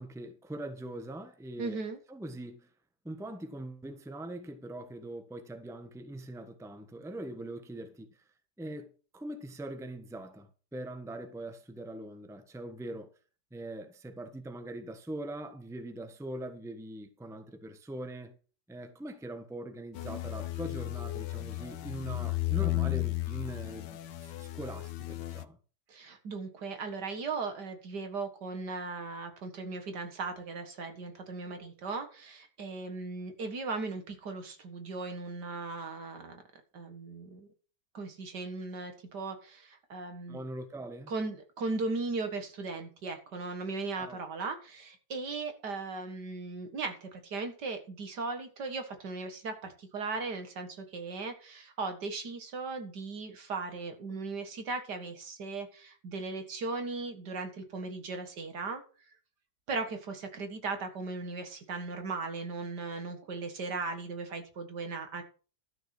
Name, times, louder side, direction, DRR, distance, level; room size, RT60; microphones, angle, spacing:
voice 1, 0.0-1.8 2.1-2.7 3.0-8.2 8.6-13.1 13.5-18.4 18.7-25.6 40.3-41.1 44.0-44.2, right 1 dB, ahead, 1.0 m, -42 dB
voice 2, 1.6-2.0 25.9-36.4 36.7-37.5 37.9-40.4 41.1-59.1 59.7-65.2, right 3 dB, 70° right, 2.3 m, -37 dB
sound 1, 19.9-25.4, left 16 dB, 90° left, 1.4 m, -34 dB
12.5 x 6.5 x 6.0 m
omnidirectional pair, 1.8 m